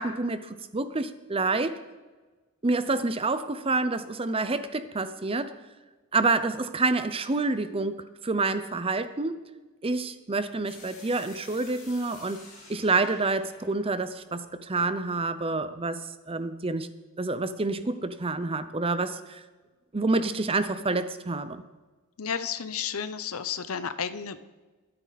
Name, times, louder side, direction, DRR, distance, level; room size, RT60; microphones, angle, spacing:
voice 1, 0.0-1.8 2.6-5.6 6.1-9.4 9.8-16.9 17.2-19.4 19.9-21.6, right 3 dB, 25° right, 12 dB, 0.7 m, -28 dB
sound 1, 10.6-15.5, left 3 dB, 45° left, 5.7 m, -51 dB
voice 2, 22.2-24.4, left 7 dB, 85° left, 13 dB, 0.8 m, -32 dB
23.0 x 8.8 x 4.1 m, 1.3 s
head